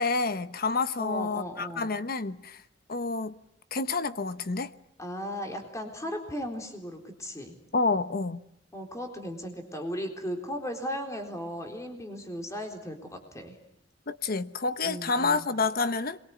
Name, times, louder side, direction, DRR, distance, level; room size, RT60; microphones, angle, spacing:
voice 1, 0.0-2.6 2.9-3.4 3.7-4.7 7.7-8.4 14.1-16.2, left 4 dB, 50° left, 1.2 m, -28 dB
voice 2, 1.0-1.9 5.0-7.6 8.7-13.6 14.8-15.4, equal, 15° left, 3.9 m, -36 dB
27.0 x 22.5 x 9.6 m
head